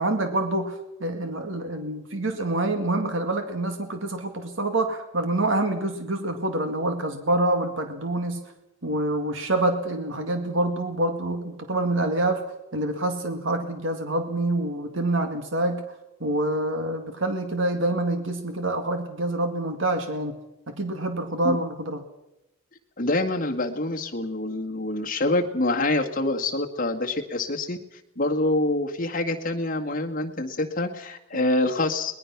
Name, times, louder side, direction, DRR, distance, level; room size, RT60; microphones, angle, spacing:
voice 1, 0.0-8.4 8.8-12.4 12.7-15.8 16.2-20.4 20.7-22.0 31.3-31.5, right 2 dB, 65° right, 6 dB, 2.1 m, -26 dB
voice 2, 23.0-27.8 28.2-32.1, left 2 dB, 40° left, 3 dB, 1.9 m, -26 dB
22.5 x 20.0 x 6.0 m, 0.91 s
head